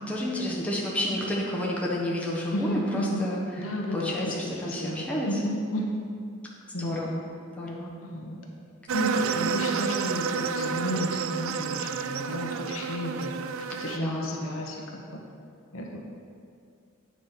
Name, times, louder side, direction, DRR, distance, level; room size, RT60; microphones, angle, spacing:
voice 1, 0.0-3.4 3.9-5.3 6.8-7.2 7.6-7.9 13.9-14.4, left 1 dB, 5° left, -5 dB, 1.2 m, -30 dB
voice 2, 2.5-3.2 3.6-6.0 6.7-7.1 8.0-8.4 8.9-13.4 13.8-15.2 15.7-16.0, equal, 75° left, -1 dB, 1.2 m, -32 dB
sound 1, 8.9-14.0, right 6 dB, 70° right, 0.4 m, -30 dB
8.5 x 5.0 x 5.8 m, 2.3 s
head